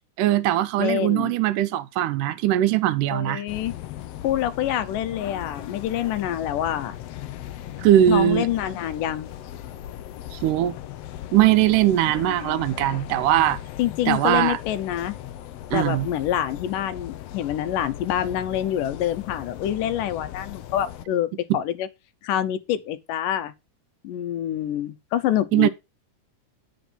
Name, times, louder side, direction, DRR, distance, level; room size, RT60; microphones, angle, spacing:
voice 1, 0.2-3.4 7.8-8.5 10.3-10.7 11.3-13.6 14.1-14.6 15.7-16.1 25.5-25.7, right 12 dB, 85° right, 2.3 m, -20 dB
voice 2, 0.8-1.3 3.1-3.8 4.2-7.0 8.1-9.3 13.8-15.2 15.7-21.9 22.2-23.5 24.0-25.7, left 11 dB, 90° left, 2.4 m, -26 dB
sound 1, 3.5-21.0, left 12 dB, 75° left, 1.5 m, -38 dB
9.1 x 5.3 x 5.3 m
omnidirectional pair, 3.7 m